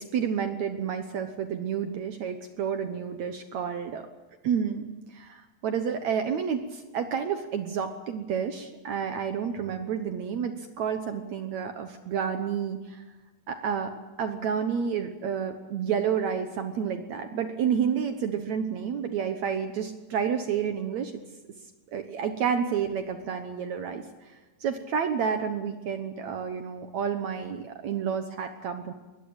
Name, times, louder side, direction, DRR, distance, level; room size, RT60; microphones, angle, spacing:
voice 1, 0.0-4.1 4.4-13.0 13.5-21.2 21.9-24.0 24.6-28.9, right 7 dB, 75° right, 7 dB, 1.6 m, -30 dB
22.5 x 19.0 x 8.9 m, 1.2 s
omnidirectional pair, 4.8 m